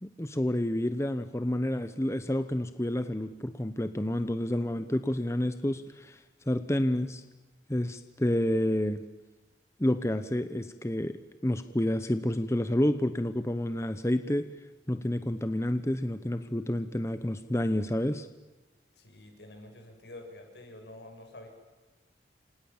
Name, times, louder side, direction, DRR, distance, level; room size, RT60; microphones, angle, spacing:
voice 1, 0.0-7.2 7.7-9.0 9.8-14.5 14.9-18.3, left 1 dB, 15° left, 10 dB, 0.9 m, -29 dB
voice 2, 19.0-21.5, left 1 dB, 75° left, 4 dB, 7.2 m, -48 dB
29.5 x 27.0 x 7.2 m, 1.2 s
head